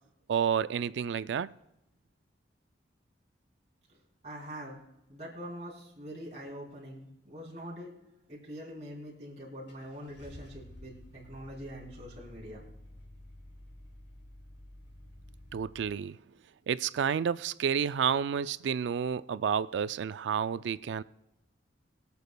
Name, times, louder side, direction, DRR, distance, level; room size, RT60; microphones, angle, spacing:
voice 1, 0.3-1.5 15.5-16.2 16.7-21.0, right 7 dB, 85° right, 0.3 m, -30 dB
voice 2, 4.2-4.8 5.1-7.9 8.3-12.6, equal, 40° right, 3.3 m, -44 dB
Car / Engine starting, 9.0-9.1 9.7-15.9, left 1 dB, 80° left, 4.7 m, -51 dB
23.0 x 8.3 x 2.2 m
head